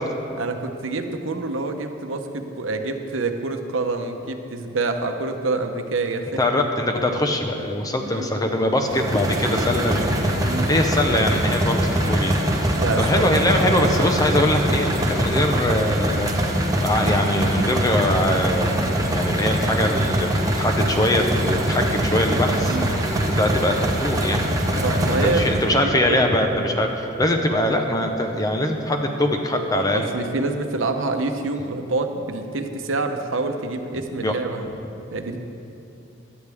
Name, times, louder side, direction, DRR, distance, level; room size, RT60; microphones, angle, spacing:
voice 1, 0.3-6.4 8.0-8.3 10.4-10.7 12.7-13.0 22.7-23.0 24.8-26.2 29.7-34.6 35.1-35.4, right 3 dB, 85° right, 6 dB, 0.9 m, -26 dB
voice 2, 6.4-10.1 10.4-24.5 25.2-30.1 34.2-34.3, left 1 dB, 20° left, 3 dB, 0.9 m, -23 dB
sound 1, 8.9-25.8, right 1 dB, 20° right, 1.0 m, -23 dB
16.5 x 11.5 x 3.6 m, 2.8 s
head